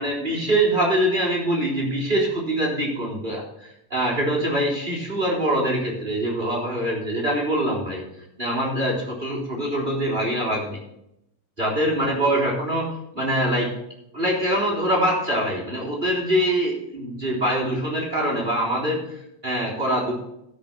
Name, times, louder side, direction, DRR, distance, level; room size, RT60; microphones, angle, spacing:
voice 1, 0.0-8.0 8.4-10.8 11.6-13.7 14.1-20.1, right 1 dB, 15° right, -3 dB, 3.5 m, -24 dB
13.0 x 6.2 x 6.0 m, 0.81 s
omnidirectional pair, 3.6 m